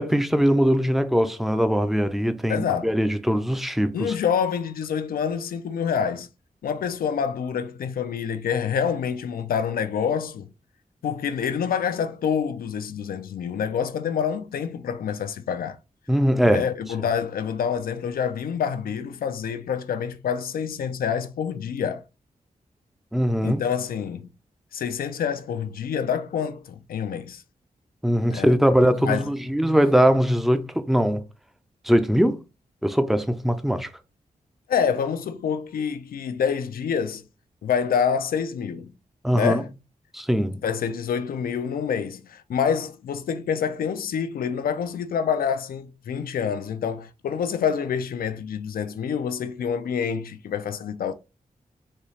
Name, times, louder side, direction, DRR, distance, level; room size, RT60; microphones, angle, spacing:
voice 1, 0.0-4.1 16.1-16.6 23.1-23.6 28.0-31.2 31.9-32.4 32.8-33.9 39.2-39.6 40.1-40.6, equal, ahead, 0.5 m, -21 dB
voice 2, 2.5-2.9 3.9-6.3 6.6-10.5 11.0-15.8 16.4-22.0 23.4-24.3 24.7-27.4 28.3-28.6 29.0-29.3 34.7-37.2 37.6-38.9 39.3-39.7 40.6-51.1, left 7 dB, 85° left, 0.5 m, -27 dB
4.2 x 2.3 x 3.2 m
cardioid pair, 70°, 15 cm